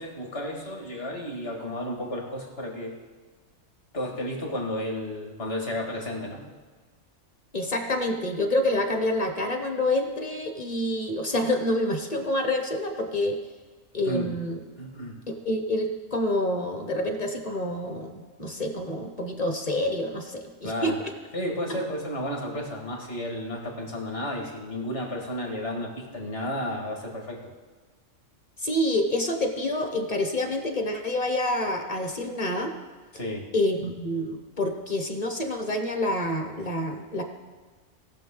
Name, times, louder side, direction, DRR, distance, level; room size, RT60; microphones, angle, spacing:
voice 1, 0.0-2.9 3.9-6.4 14.1-14.3 14.8-15.1 20.6-21.0 21.3-27.5 33.1-33.5, left 1 dB, 50° left, 0 dB, 2.3 m, -32 dB
voice 2, 7.5-13.4 13.9-14.6 15.3-21.1 21.7-21.8 28.6-32.7 33.5-37.2, left 1 dB, 35° left, 4 dB, 1.1 m, -27 dB
19.5 x 6.6 x 3.8 m, 1.4 s
omnidirectional pair, 1.3 m